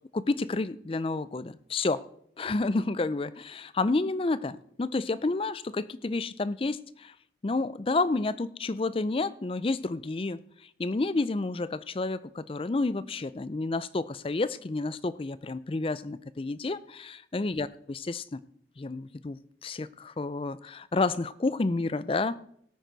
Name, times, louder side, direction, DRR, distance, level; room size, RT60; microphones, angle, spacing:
voice 1, 0.1-2.0 2.4-7.1 7.4-10.4 10.8-18.4 18.8-22.4, left 3 dB, 30° left, 16 dB, 0.4 m, -30 dB
18.0 x 9.0 x 4.0 m, 0.67 s
head